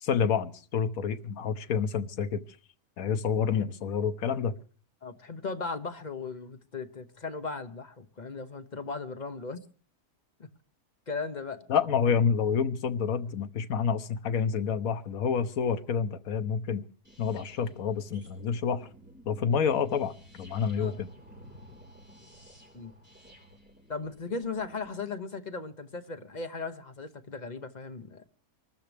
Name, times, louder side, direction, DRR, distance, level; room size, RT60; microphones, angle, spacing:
voice 1, 0.0-2.4 3.0-4.5 11.7-16.8 17.2-18.9 19.3-21.1, left 6 dB, 70° left, 1.4 m, -28 dB
voice 2, 5.0-9.6 10.4-10.5 11.1-11.6 20.8-21.0 22.7-22.9 23.9-28.2, left 4 dB, 35° left, 1.0 m, -37 dB
sound 1, 17.0-24.9, equal, 5° right, 4.1 m, -53 dB
25.0 x 13.5 x 3.4 m
omnidirectional pair, 1.6 m